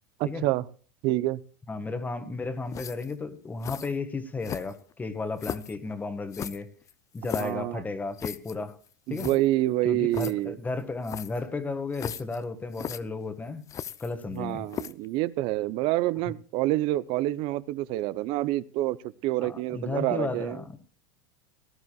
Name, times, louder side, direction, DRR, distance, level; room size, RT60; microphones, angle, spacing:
voice 1, 0.2-0.6 1.0-1.4 7.4-7.8 9.1-10.6 14.3-20.6, right 16 dB, 55° right, 18 dB, 0.7 m, -27 dB
voice 2, 1.7-6.7 7.1-8.8 9.1-9.3 9.8-13.7 14.0-14.7 19.4-20.8, left 3 dB, 15° left, 9 dB, 1.7 m, -33 dB
sound 1, 2.7-3.1 3.6-3.9 4.4-4.9 5.4-5.8 6.3-7.6 8.2-8.6 8.9-9.0 9.1-9.4 10.1-10.3 11.0-11.4 11.9-12.4 12.7-13.0 13.7-14.4 14.7-15.1, left 9 dB, 30° left, 0.6 m, -37 dB
18.5 x 12.0 x 2.4 m, 0.42 s
hypercardioid pair, 105°, 11 cm